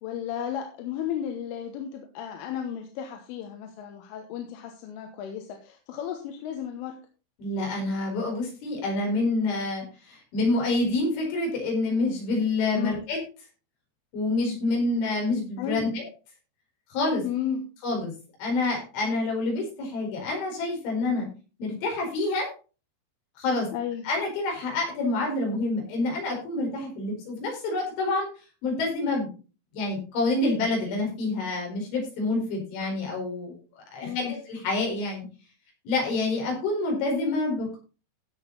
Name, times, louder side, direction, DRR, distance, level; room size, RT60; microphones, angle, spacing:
voice 1, 0.0-7.0 12.8-13.0 15.6-15.9 17.2-17.7 23.7-24.1 34.0-34.4, left 9 dB, 85° left, 4 dB, 3.7 m, -33 dB
voice 2, 7.4-13.2 14.1-16.0 16.9-17.2 17.8-18.1 18.4-21.3 21.6-22.5 23.4-23.7 24.1-28.3 28.6-29.3 29.7-35.3 35.9-37.8, left 2 dB, 70° left, 0 dB, 6.9 m, -27 dB
16.0 x 6.3 x 4.1 m, 0.34 s
omnidirectional pair, 5.7 m